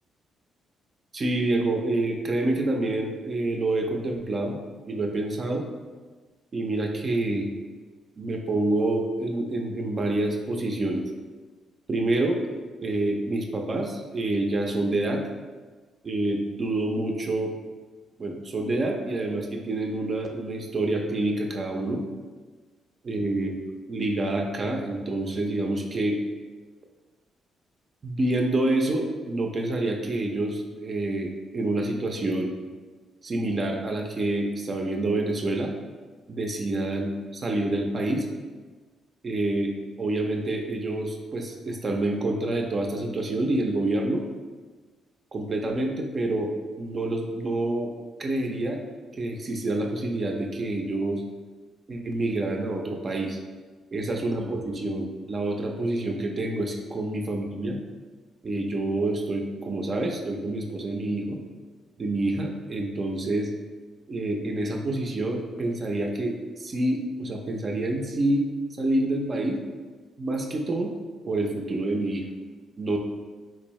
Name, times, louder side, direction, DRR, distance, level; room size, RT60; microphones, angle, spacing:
voice 1, 1.1-4.6 4.9-5.6 6.5-7.5 8.2-11.0 11.9-12.4 12.8-15.2 16.0-17.5 18.2-22.0 23.0-23.5 23.9-26.2 28.0-32.5 33.2-35.7 36.3-38.3 39.2-39.7 40.0-44.2 45.3-47.9 48.2-48.8 49.1-51.2 51.9-53.4 53.9-57.8 58.4-61.4 62.0-63.5 64.1-68.5 68.8-69.6 70.2-70.9 71.2-72.2 72.8-73.0, right 2 dB, 40° right, 2 dB, 0.4 m, -27 dB
3.7 x 2.6 x 3.0 m, 1.4 s
cardioid pair, 90°, 0 cm